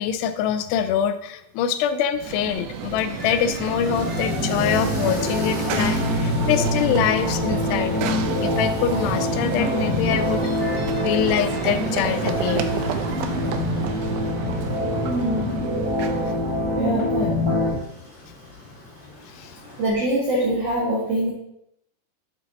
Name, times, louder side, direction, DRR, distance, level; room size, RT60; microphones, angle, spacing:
voice 1, 0.0-10.4 11.0-12.7 19.3-19.5, left 9 dB, 90° left, 10 dB, 2.7 m, -24 dB
Run / Train, 2.2-16.6, right 9 dB, 85° right, 2.6 m, -31 dB
sound 1, 2.7-19.9, equal, 30° left, 1.0 m, -33 dB
sound 2, 3.0-17.7, left 2 dB, 10° left, 1.4 m, -26 dB
voice 2, 15.0-15.5 16.7-17.4 19.8-21.3, right 1 dB, 70° right, -6 dB, 1.5 m, -24 dB
7.0 x 4.5 x 3.9 m, 0.80 s
omnidirectional pair, 4.7 m